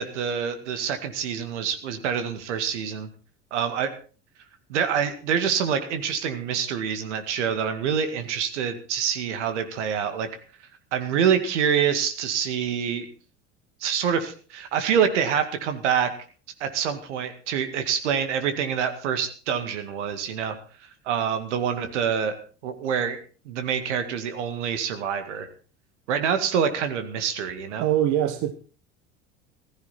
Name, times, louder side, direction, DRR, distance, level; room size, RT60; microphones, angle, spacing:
voice 1, 0.0-3.1 3.5-3.9 4.7-10.3 10.9-13.1 13.8-16.1 16.6-20.6 21.1-22.3 22.6-23.2 23.5-25.5 26.1-27.9, right 7 dB, 70° right, 2.2 m, -26 dB
voice 2, 27.8-28.5, right 11 dB, 50° right, 1.2 m, -22 dB
15.0 x 15.0 x 4.4 m
figure-of-eight pair, 70°, 36 cm